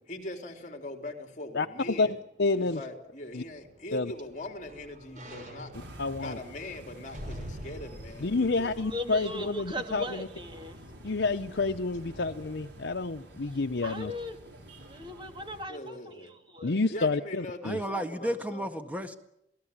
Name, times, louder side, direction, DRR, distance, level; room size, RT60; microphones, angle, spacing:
voice 1, 0.1-2.2 2.5-5.7 6.2-8.7 10.0-10.3 11.8-12.3 15.7-16.3 16.9-18.7, left 1 dB, 40° left, 4 dB, 3.9 m, -41 dB
voice 2, 1.5-2.1 2.4-2.8 3.3-3.4 3.9-4.1 6.0-6.4 8.2-10.3 11.0-14.1 16.6-17.8, left 3 dB, 85° left, 6 dB, 0.9 m, -29 dB
sound 1, 3.4-9.8 10.2-10.3, equal, 45° right, 6.5 m, -46 dB
sound 2, 5.7-15.7, right 1 dB, 85° right, 5.3 m, -49 dB
voice 3, 8.8-10.8 13.8-14.4 14.8-16.8, left 1 dB, 25° right, 5 dB, 2.8 m, -38 dB
voice 4, 17.6-19.2, right 1 dB, 10° right, 7 dB, 1.8 m, -33 dB
28.5 x 18.0 x 8.9 m, 0.80 s
head